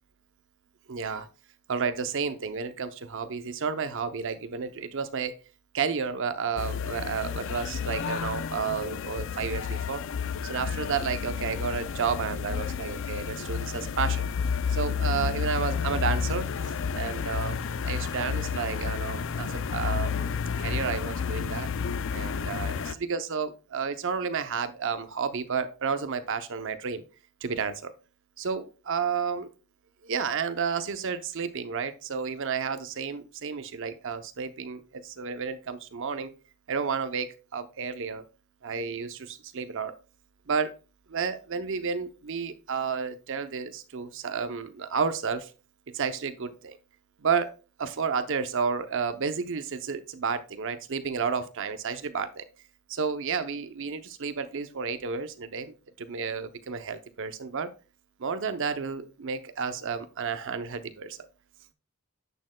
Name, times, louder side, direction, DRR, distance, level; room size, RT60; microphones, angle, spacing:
voice 1, 0.9-1.3 1.7-5.3 5.7-10.0 10.4-14.2 14.7-16.4 16.9-17.6 17.8-21.7 22.1-22.7 23.1-27.0 27.4-27.9 28.4-29.5 30.0-36.3 36.7-38.2 38.6-39.9 40.5-40.7 41.1-45.5 45.9-46.8 47.2-47.5 47.8-52.4 52.9-57.7 58.2-61.3, right 5 dB, 60° right, 10 dB, 0.7 m, -31 dB
sound 1, 6.6-22.9, left 6 dB, 60° left, 0.4 m, -31 dB
10.0 x 6.4 x 2.2 m, 0.34 s
head